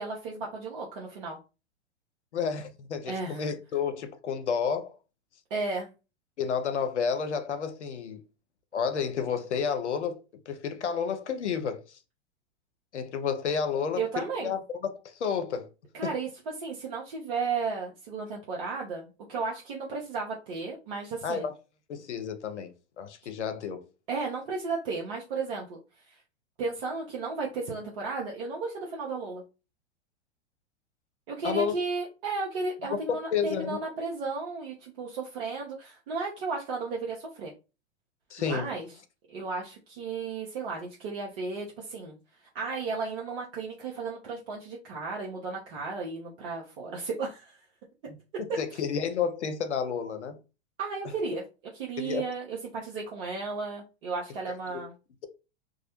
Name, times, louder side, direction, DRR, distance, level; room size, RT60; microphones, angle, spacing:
voice 1, 0.0-1.4 3.0-3.4 5.5-5.9 14.0-14.5 15.9-16.3 16.6-21.5 24.1-26.2 26.6-29.4 31.3-37.5 38.4-38.9 39.3-42.2 42.5-47.6 50.8-51.4 51.7-54.9, right 4 dB, 55° right, 0.7 m, -34 dB
voice 2, 2.3-5.0 6.4-8.2 8.7-10.2 10.5-12.0 12.9-15.7 16.0-16.1 21.2-21.5 21.9-23.9 31.4-31.8 32.9-33.8 38.3-38.7 48.4-50.4 52.0-52.2 54.7-54.8, left 6 dB, 80° left, 0.6 m, -31 dB
2.3 x 2.0 x 2.9 m
figure-of-eight pair, 100°, 34 cm